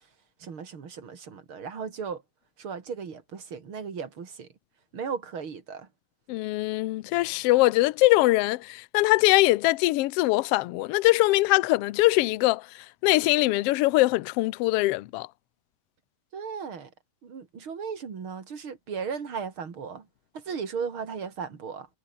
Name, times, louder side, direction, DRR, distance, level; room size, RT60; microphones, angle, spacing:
voice 1, 0.4-2.2 2.6-4.5 4.9-5.9 16.3-16.9 17.2-20.1 20.3-21.9, right 6 dB, 45° right, 3.3 m, -36 dB
voice 2, 6.3-12.6 13.0-15.3, left 19 dB, 75° left, 1.4 m, -22 dB
omnidirectional pair, 3.4 m